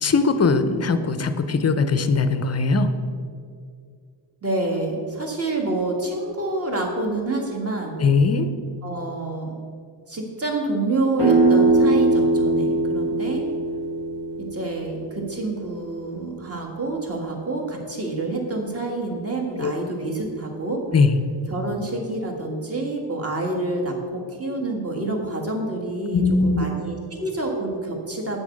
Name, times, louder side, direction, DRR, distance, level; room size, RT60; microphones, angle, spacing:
voice 1, 0.0-2.9 8.0-8.5 19.6-19.7 20.9-21.1 26.1-26.6, left 4 dB, 30° left, 10 dB, 0.5 m, -20 dB
voice 2, 4.4-8.0 8.8-9.5 10.1-13.5 14.4-20.8 21.5-28.4, right 2 dB, 30° right, 0 dB, 1.6 m, -27 dB
sound 1, 11.2-16.8, right 2 dB, 60° right, 1.9 m, -22 dB
8.1 x 7.0 x 6.5 m, 2.3 s
wide cardioid pair, 165°, 49 cm